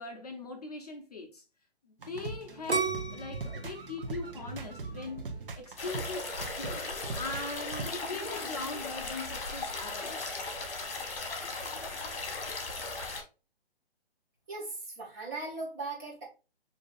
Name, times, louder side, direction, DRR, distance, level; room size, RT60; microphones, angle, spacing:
voice 1, 0.0-1.4 2.1-5.2 5.5-6.9 7.1-10.4, left 3 dB, 35° left, 0.6 m, -40 dB
sound 1, 2.0-7.9, right 3 dB, 55° right, 0.9 m, -40 dB
sound 2, 2.7-5.6 6.1-6.6, right 4 dB, 80° right, 1.6 m, -34 dB
sound 3, 5.8-13.2, left 3 dB, 60° left, 1.4 m, -37 dB
voice 2, 14.5-16.2, right 3 dB, 15° right, 1.0 m, -38 dB
6.7 x 2.7 x 2.4 m
hypercardioid pair, 160°, 32 cm